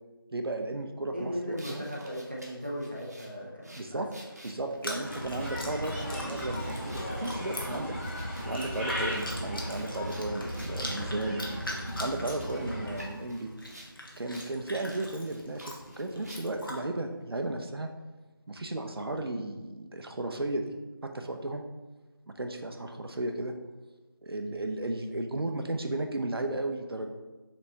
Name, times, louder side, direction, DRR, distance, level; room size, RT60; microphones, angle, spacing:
voice 1, 0.3-1.9 3.8-4.1 4.4-13.5 14.2-17.9 18.5-20.7 21.0-21.6 22.4-23.5 24.2-27.1, right 2 dB, 80° right, 4 dB, 0.6 m, -34 dB
voice 2, 1.1-4.0, equal, 25° right, -3 dB, 0.4 m, -37 dB
sound 1, 1.6-11.1 11.6-13.9 14.3-14.5 14.8-16.7, right 1 dB, 45° right, 0.9 m, -52 dB
Chewing mastication, 4.7-16.8, left 1 dB, 65° left, 1.0 m, -43 dB
Bird, 5.0-13.0, equal, 30° left, 1.1 m, -36 dB
4.3 x 4.1 x 2.7 m, 1.2 s
figure-of-eight pair, 175°, 12 cm